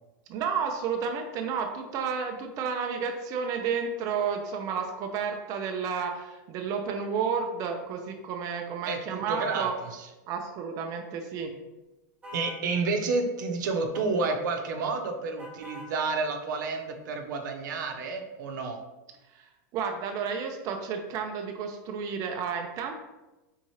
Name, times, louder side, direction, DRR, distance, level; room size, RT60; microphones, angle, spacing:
voice 1, 0.3-9.7 10.3-11.6 19.3-23.0, right 6 dB, 35° right, 3 dB, 0.5 m, -31 dB
voice 2, 8.9-10.1 12.3-18.8, right 3 dB, 80° right, 4 dB, 0.7 m, -30 dB
sound 1, 12.2-12.6 13.9-14.3 15.4-15.9, left 2 dB, 10° right, 0.8 m, -43 dB
4.1 x 3.7 x 3.1 m, 1.1 s
supercardioid pair, 145°, 10 cm